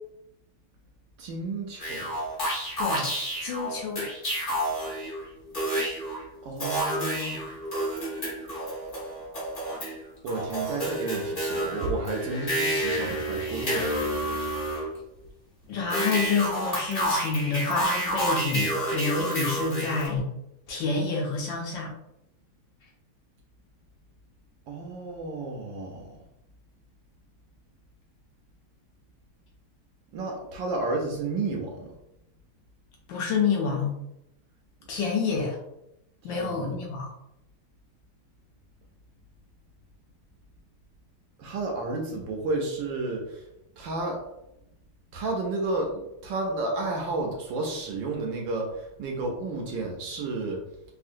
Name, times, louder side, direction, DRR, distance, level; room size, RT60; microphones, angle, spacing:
voice 1, 1.2-2.1 6.4-7.5 10.2-14.5 24.7-26.2 30.1-31.9 36.2-36.8 41.4-43.4 43.8-44.2 45.1-50.6, right 2 dB, 75° right, 1 dB, 1.2 m, -32 dB
sound 1, 1.8-5.2 5.5-6.2 6.6-10.0 10.3-14.9 15.9-20.1, right 1 dB, 30° left, 1.1 m, -29 dB
voice 2, 3.4-4.1 15.7-20.3 20.7-21.9 33.1-33.9 34.9-35.6 36.2-37.1, left 4 dB, 70° left, -1 dB, 1.2 m, -28 dB
3.6 x 2.4 x 2.5 m, 0.84 s
omnidirectional pair, 2.3 m